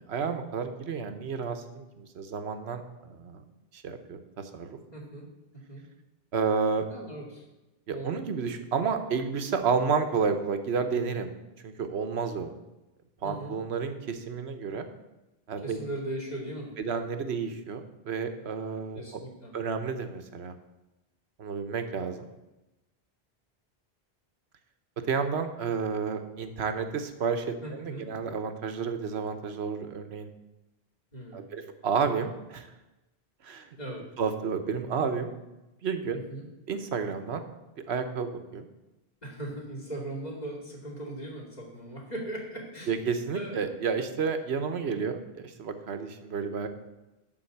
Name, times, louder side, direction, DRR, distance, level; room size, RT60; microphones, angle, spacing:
voice 1, 0.1-3.4 3.7-4.2 4.5-4.8 6.3-6.8 7.9-11.3 11.6-12.5 13.2-14.8 15.5-15.8 16.8-19.0 19.5-20.5 21.4-22.3 25.1-30.3 31.3-32.7 33.4-33.6 34.2-35.3 35.8-36.2 36.7-37.4 37.9-38.6 42.9-46.7, right 5 dB, 90° right, 8 dB, 1.2 m, -31 dB
voice 2, 4.9-5.8 6.9-7.4 7.9-8.1 13.2-13.6 15.6-16.7 18.9-19.5 27.6-28.1 31.1-31.5 33.8-34.0 36.1-36.5 39.2-43.0 43.3-43.6, right 1 dB, 40° left, -2 dB, 2.7 m, -39 dB
11.5 x 4.0 x 7.8 m, 1.0 s
omnidirectional pair, 1.1 m